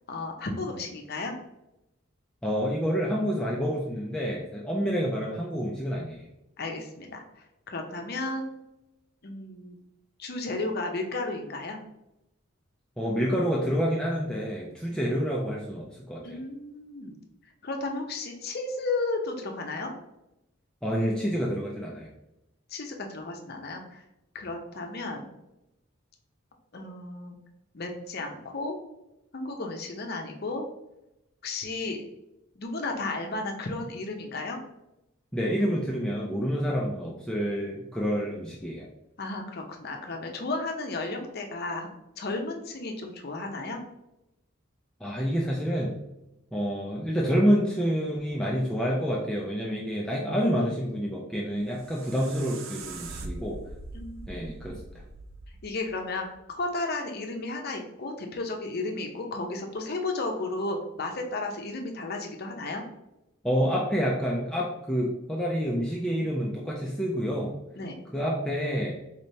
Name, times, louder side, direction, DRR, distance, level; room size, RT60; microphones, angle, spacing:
voice 1, 0.1-1.3 6.6-8.5 9.2-9.7 10.2-11.8 16.2-17.2 17.6-19.9 22.7-24.0 24.3-25.3 26.7-27.4 27.7-28.8 29.3-30.6 31.4-32.0 32.6-34.6 39.2-41.9 42.2-43.8 53.9-54.6 55.6-62.8 67.8-68.0, left 2 dB, 50° left, 3 dB, 0.7 m, -33 dB
voice 2, 2.4-6.3 13.0-16.4 20.8-22.1 35.3-38.9 45.0-46.0 46.5-53.6 54.3-54.8 63.4-67.5 68.1-69.0, equal, 5° left, -4 dB, 0.5 m, -28 dB
sound 1, 51.5-56.6, right 3 dB, 80° right, 0.5 m, -42 dB
4.2 x 3.3 x 2.7 m, 0.90 s
head